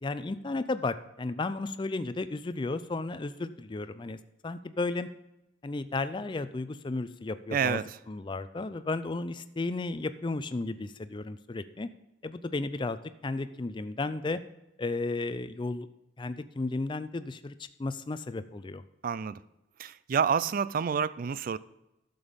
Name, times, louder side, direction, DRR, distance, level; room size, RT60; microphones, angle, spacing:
voice 1, 0.0-4.2 4.4-5.1 5.6-11.9 12.2-14.4 14.8-15.9 16.2-17.5 17.8-18.8, left 3 dB, 25° left, 12 dB, 0.4 m, -33 dB
voice 2, 7.5-7.8 19.0-19.4 19.8-21.6, right 6 dB, 45° right, 18 dB, 0.3 m, -28 dB
11.0 x 6.9 x 5.2 m, 0.92 s
head